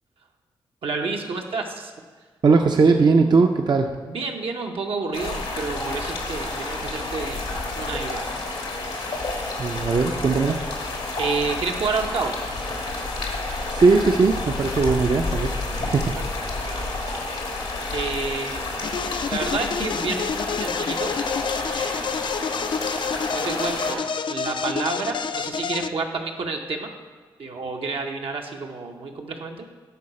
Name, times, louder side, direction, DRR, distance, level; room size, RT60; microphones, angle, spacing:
voice 1, 0.8-1.9 4.1-7.4 7.7-8.3 11.2-12.4 15.6-16.3 16.6-17.0 17.9-18.6 19.3-21.1 21.7-22.2 23.3-26.9 27.4-29.7, right 4 dB, 75° right, 2 dB, 0.8 m, -30 dB
voice 2, 2.4-4.0 9.6-10.6 13.7-16.2, right 4 dB, 50° right, 4 dB, 0.5 m, -19 dB
sound 1, 5.1-23.9, left 2 dB, 85° left, 1.3 m, -30 dB
sound 2, 18.8-25.9, left 6 dB, 55° left, 0.3 m, -28 dB
11.5 x 3.9 x 4.3 m, 1.4 s
supercardioid pair, 45°, 10 cm